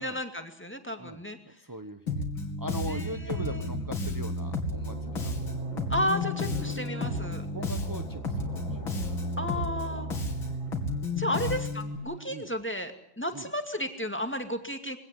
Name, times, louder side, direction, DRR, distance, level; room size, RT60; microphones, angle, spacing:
voice 1, 0.0-1.4 2.9-3.7 5.9-7.5 9.4-10.1 11.2-15.0, equal, 5° left, 7 dB, 2.1 m, -33 dB
voice 2, 1.0-2.2 2.6-5.6 6.6-6.8 7.5-9.1 9.4-9.6 10.2-10.4 11.3-11.6 12.3-12.5 13.3-13.5, right 1 dB, 20° right, 7 dB, 0.6 m, -41 dB
Bass guitar, 2.1-12.0, left 2 dB, 70° left, 3.4 m, -32 dB
sound 1, 3.9-12.3, right 1 dB, 60° right, 6.5 m, -47 dB
23.0 x 17.5 x 9.8 m, 0.67 s
omnidirectional pair, 2.3 m